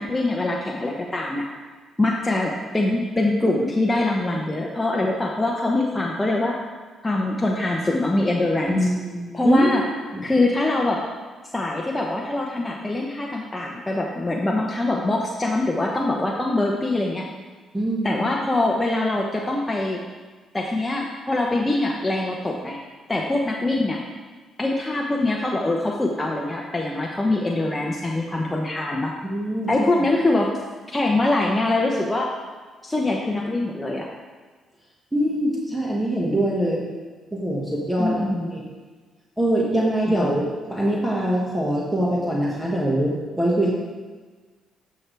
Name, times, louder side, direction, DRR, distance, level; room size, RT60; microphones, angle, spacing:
voice 1, 0.0-1.5 2.0-6.6 7.0-8.9 9.3-9.8 10.2-11.0 11.5-17.2 18.0-20.0 20.5-22.8 23.1-24.0 24.6-29.1 29.7-30.5 30.9-32.3 32.8-34.1 38.0-38.5 40.1-40.3, left 2 dB, 15° left, -1 dB, 0.8 m, -23 dB
voice 2, 8.7-9.7 10.1-10.3 17.7-18.2 29.2-29.9 35.1-36.8 37.3-38.2 38.5-38.6 39.4-40.4 40.7-43.7, right 1 dB, 10° right, -4 dB, 1.6 m, -23 dB
11.5 x 6.0 x 3.4 m, 1.4 s
cardioid pair, 90°, 0 cm